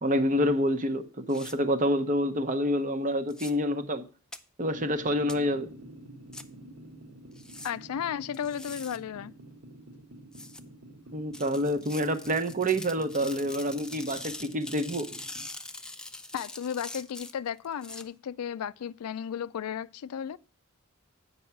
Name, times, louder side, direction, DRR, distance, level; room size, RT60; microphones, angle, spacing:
voice 1, 0.0-4.0 4.6-5.7 11.1-15.1, equal, 35° right, 0.8 m, -27 dB
sound 1, 1.3-1.5 3.3-3.5 4.3-4.4 5.3-5.4 6.3-6.4 7.4-7.7 8.3-9.0 10.3-10.6 11.3-18.0, left 2 dB, 5° left, 0.4 m, -43 dB
sound 2, 4.7-15.4, right 1 dB, 65° right, 1.4 m, -49 dB
voice 2, 7.6-9.3 16.3-20.4, left 8 dB, 85° left, 0.4 m, -34 dB
8.6 x 5.5 x 5.7 m
head